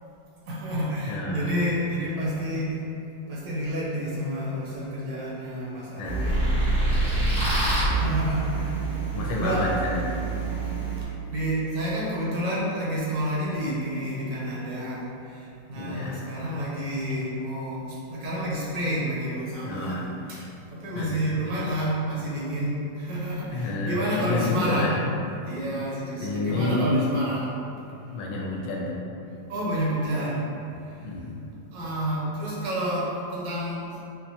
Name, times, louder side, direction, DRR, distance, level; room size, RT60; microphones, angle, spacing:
voice 1, 0.5-2.8 3.3-6.5 6.9-7.0 7.8-8.8 9.3-9.7 10.6-25.0 25.4-27.5 29.5-30.5 30.8-31.1 31.7-34.0, equal, 75° right, -6 dB, 1.4 m, -29 dB
voice 2, 1.1-1.5 6.0-6.2 9.1-10.2 15.7-16.3 19.6-20.1 20.9-21.5 23.5-25.0 26.2-27.1 28.1-29.0 31.0-31.3, left 2 dB, 75° left, -3 dB, 1.2 m, -29 dB
sound 1, 6.0-11.0, right 2 dB, 10° left, 0.3 m, -26 dB
4.3 x 2.1 x 2.7 m, 2.7 s
omnidirectional pair, 2.0 m